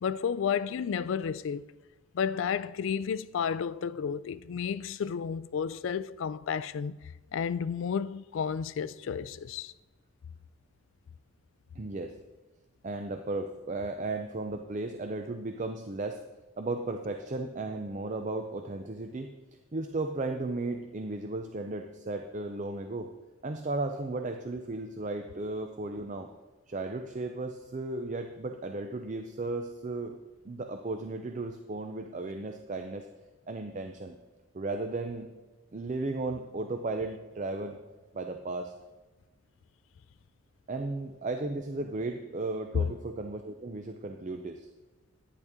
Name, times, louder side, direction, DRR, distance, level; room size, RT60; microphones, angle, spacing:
voice 1, 0.0-1.7 2.1-7.0 7.3-9.7 42.7-42.9, left 7 dB, 65° left, 0.3 m, -31 dB
voice 2, 11.8-12.2 12.8-16.2 16.6-19.3 19.7-23.1 23.4-26.3 26.7-30.2 30.4-33.1 33.5-34.1 34.5-35.3 35.7-37.8 38.1-38.7 40.7-44.7, right 2 dB, 35° right, 0.5 m, -35 dB
10.5 x 9.8 x 3.6 m
head